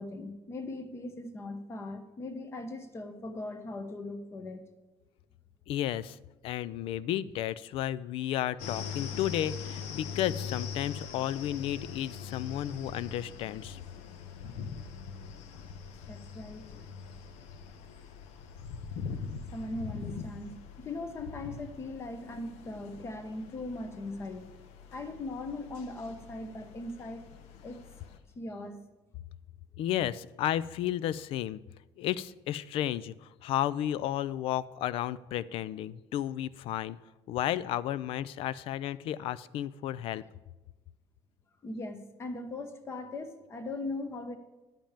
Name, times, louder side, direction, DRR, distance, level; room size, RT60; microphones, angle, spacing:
voice 1, 0.0-4.7 16.1-16.9 19.5-24.5 24.9-27.3 27.6-27.8 28.4-28.8 41.6-44.4, left 2 dB, 25° left, 8 dB, 0.9 m, -39 dB
voice 2, 5.7-6.2 6.4-13.8 29.8-31.6 32.0-37.0 37.3-40.2, left 12 dB, 55° left, 18 dB, 0.4 m, -33 dB
sound 1, 8.6-28.2, left 6 dB, 75° left, 0.9 m, -42 dB
10.5 x 5.2 x 7.2 m, 1.1 s
cardioid pair, 160°, 11 cm